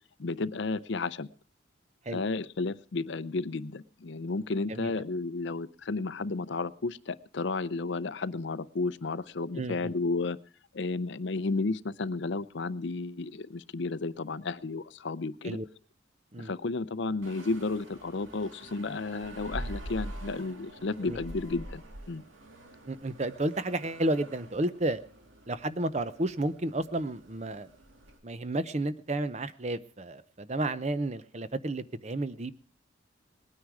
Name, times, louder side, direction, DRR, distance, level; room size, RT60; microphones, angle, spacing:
voice 1, 0.2-1.3 2.1-10.4 10.7-15.6 16.4-21.8 22.1-22.2, left 3 dB, 65° left, 17 dB, 0.6 m, -32 dB
voice 2, 4.7-5.0 9.5-9.9 15.4-15.7 16.3-16.5 21.0-21.2 22.9-25.0 25.5-27.7 28.2-32.5, right 1 dB, 35° right, 14 dB, 0.7 m, -32 dB
sound 1, 17.2-28.2, right 1 dB, 85° right, 2.3 m, -45 dB
20.0 x 9.7 x 4.8 m, 0.37 s
head